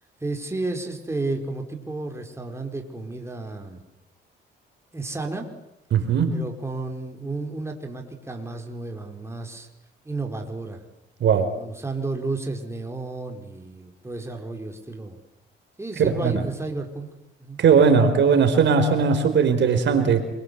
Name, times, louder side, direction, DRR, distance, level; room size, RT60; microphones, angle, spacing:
voice 1, 0.2-3.8 4.9-5.5 6.3-9.7 10.0-10.8 11.5-15.2 15.8-17.1 17.4-17.6, right 3 dB, 15° right, 3 dB, 4.8 m, -32 dB
voice 2, 5.9-6.4 11.2-11.5 16.0-16.4 17.6-20.2, right 6 dB, 65° right, 7 dB, 4.6 m, -19 dB
27.0 x 24.0 x 8.2 m, 0.87 s
cardioid pair, 90°, 20 cm